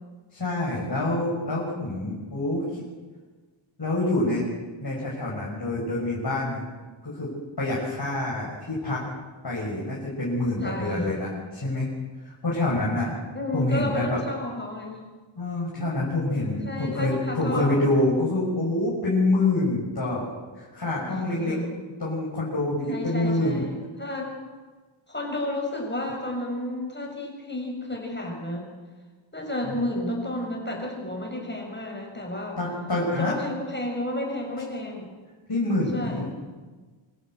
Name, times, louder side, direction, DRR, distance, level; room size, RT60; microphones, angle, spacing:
voice 1, 0.3-2.8 3.8-4.5 4.8-6.7 7.0-7.3 7.6-9.0 9.4-11.9 12.2-13.1 13.5-14.2 15.4-20.3 20.5-21.5 22.0-23.6 29.7-29.8 32.6-33.3 35.5-36.3, left 2 dB, 50° left, -5 dB, 6.6 m, -26 dB
voice 2, 10.6-11.1 13.3-15.0 16.6-17.8 21.1-21.7 22.9-24.2 25.1-28.7 29.3-32.6 33.2-35.2 35.9-36.3, left 1 dB, 20° left, 1 dB, 7.0 m, -32 dB
26.0 x 15.5 x 8.0 m, 1.4 s
wide cardioid pair, 100°, 49 cm